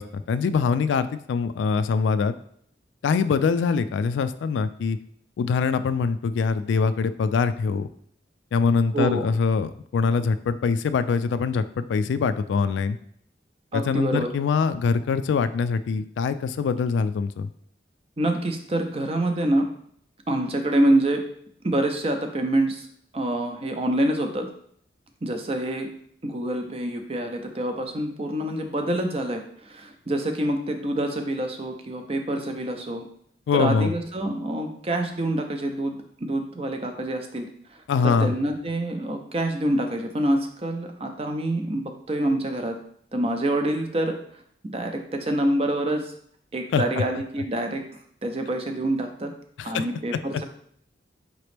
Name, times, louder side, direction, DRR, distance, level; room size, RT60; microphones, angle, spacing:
voice 1, 0.0-2.3 3.0-5.0 5.4-7.9 8.5-13.0 13.7-17.5 33.5-33.9 37.9-38.3 46.7-46.8 49.6-49.9, left 5 dB, 85° left, 12 dB, 0.3 m, -23 dB
voice 2, 8.9-9.3 13.7-14.3 18.2-19.7 20.3-21.2 21.6-22.9 23.1-24.5 25.2-25.9 26.2-33.1 33.5-42.7 43.1-44.2 44.6-46.1 46.5-47.8 48.2-49.3 49.6-50.4, right 1 dB, 30° right, 5 dB, 0.5 m, -26 dB
5.0 x 3.0 x 3.3 m, 0.65 s
head